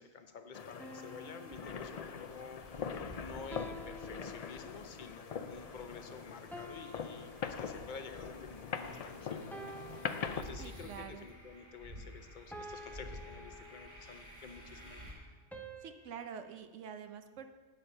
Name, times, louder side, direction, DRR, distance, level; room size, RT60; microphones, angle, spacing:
voice 1, 0.0-15.1, left 5 dB, 45° left, 8 dB, 0.8 m, -50 dB
sound 1, 0.5-10.4, left 6 dB, 60° left, 0.4 m, -43 dB
sound 2, 0.8-2.4 3.5-5.0 6.5-8.2 9.5-11.0 12.5-14.3 15.5-16.6, equal, ahead, 0.5 m, -50 dB
sound 3, 1.5-15.1, equal, 45° right, 2.5 m, -53 dB
voice 2, 10.6-11.2 15.8-17.5, right 7 dB, 80° right, 9 dB, 1.0 m, -46 dB
8.5 x 8.0 x 5.5 m, 1.4 s
omnidirectional pair, 1.3 m